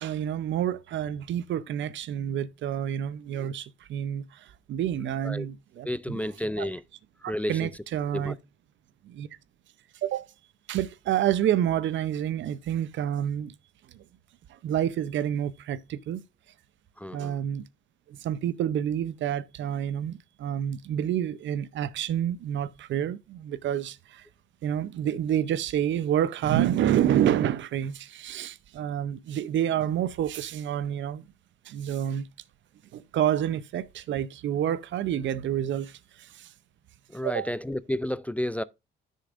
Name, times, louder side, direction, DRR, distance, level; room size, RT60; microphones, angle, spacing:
voice 1, 0.0-6.2 6.6-6.7 7.2-8.4 9.0-9.3 10.0-10.2 10.7-13.5 13.9-14.0 14.5-16.2 17.1-17.6 18.1-24.3 24.6-31.2 31.7-32.3 32.9-36.5 37.2-37.5, right 10 dB, 70° right, 0.6 m, -28 dB
voice 2, 5.8-6.8 7.2-7.7 8.1-8.3 17.0-17.4 37.1-38.6, left 1 dB, 5° left, 0.3 m, -31 dB
11.0 x 6.6 x 2.5 m
cardioid pair, 90°, 20 cm